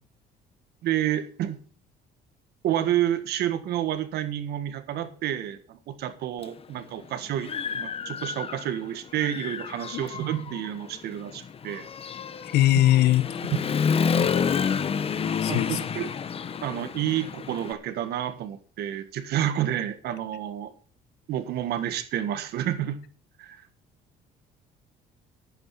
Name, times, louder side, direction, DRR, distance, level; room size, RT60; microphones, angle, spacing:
voice 1, 0.8-1.6 2.6-11.9 15.5-16.1 16.6-20.7 21.3-23.0 23.4-23.6, right 11 dB, 75° right, 1.6 m, -29 dB
Human voice / Motorcycle, 6.4-6.5 7.0-8.8 9.1-17.7, left 6 dB, 35° left, 0.8 m, -29 dB
voice 2, 12.4-13.4 15.4-15.8, left 14 dB, 75° left, 0.9 m, -21 dB
11.0 x 9.0 x 5.7 m
cardioid pair, 110°, 17 cm